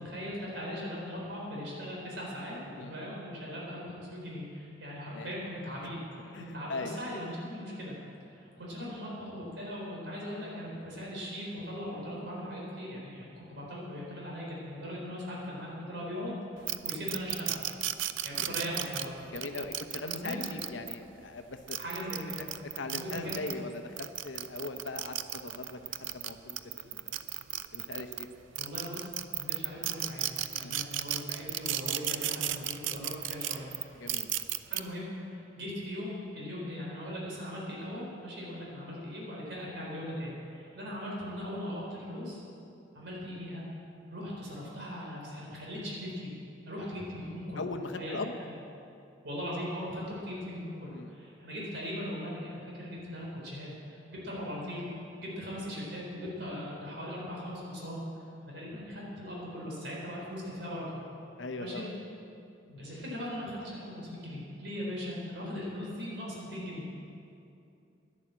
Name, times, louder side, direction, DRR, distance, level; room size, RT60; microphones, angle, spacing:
voice 1, 0.0-8.0 8.3-17.6 18.2-19.1 20.0-20.5 21.8-22.5 22.9-23.5 28.6-33.7 34.7-42.4 42.9-43.7 44.1-46.3 46.7-47.6 47.9-48.5 49.2-54.9 55.2-58.0 58.5-61.0 61.6-61.9 62.7-66.8, equal, 65° right, -4 dB, 4.1 m, -39 dB
voice 2, 6.3-7.2 19.3-21.8 22.8-27.3 27.7-28.3 30.6-30.8 34.0-34.3 47.6-48.3 50.9-51.1 61.4-61.9, left 3 dB, 80° left, 7 dB, 0.9 m, -40 dB
sound 1, 16.7-20.9 21.5-23.6 24.0-28.2 28.5-34.8, right 13 dB, 80° right, 0.5 m, -34 dB
11.0 x 11.0 x 7.5 m, 2.7 s
head